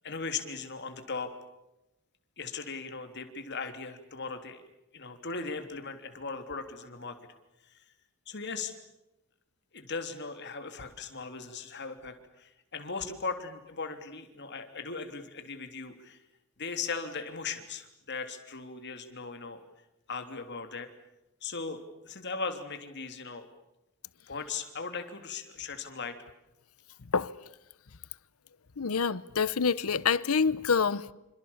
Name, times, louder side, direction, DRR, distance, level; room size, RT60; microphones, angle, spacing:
voice 1, 0.0-1.3 2.4-4.6 4.9-7.2 8.3-8.7 9.7-16.2 16.6-19.6 20.1-20.9 21.4-23.5 24.3-26.2, left 4 dB, 55° left, 3.3 m, -38 dB
voice 2, 28.8-31.1, left 5 dB, 90° left, 0.9 m, -27 dB
27.5 x 26.5 x 7.3 m
head